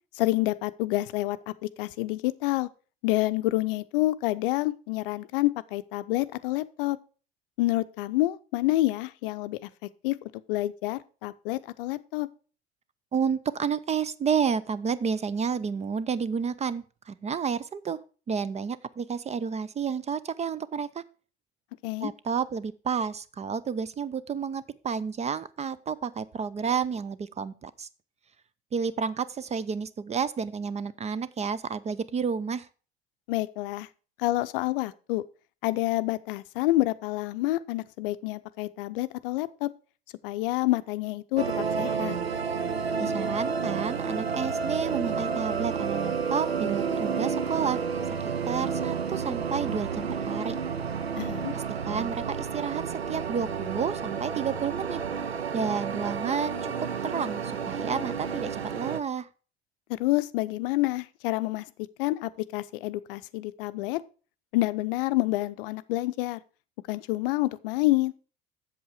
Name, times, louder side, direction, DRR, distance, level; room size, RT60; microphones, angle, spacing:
voice 1, 0.2-2.7 3.0-7.0 7.6-10.2 10.5-12.3 21.8-22.1 33.3-33.9 34.2-35.2 35.6-39.7 40.2-42.2 51.2-51.5 59.9-61.6 62.0-64.0 64.5-66.4 66.9-68.1, left 18 dB, 60° left, 0.6 m, -28 dB
voice 2, 13.1-18.0 18.3-21.0 22.0-27.9 28.7-32.7 43.0-47.8 48.4-50.5 51.5-55.0 55.5-56.7 57.0-59.3, right 6 dB, 20° right, 0.5 m, -30 dB
sound 1, 41.4-59.0, right 6 dB, 90° right, 0.5 m, -30 dB
7.9 x 7.4 x 4.9 m
figure-of-eight pair, 65°, 30 cm